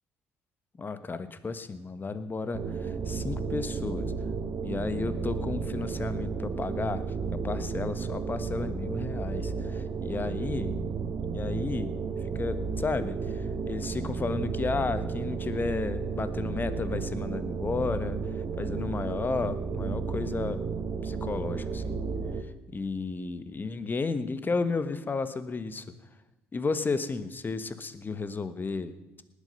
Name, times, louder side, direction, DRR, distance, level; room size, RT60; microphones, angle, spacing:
voice 1, 0.8-4.1 4.6-7.0 7.4-10.7 11.2-11.9 12.2-20.6 21.0-22.0 22.4-25.8 26.5-28.9, left 4 dB, 30° left, 12 dB, 1.4 m, -33 dB
sound 1, 2.5-22.4, right 5 dB, 45° right, 1.7 m, -33 dB
19.5 x 8.6 x 5.6 m, 1.0 s
hypercardioid pair, 55°, 6 cm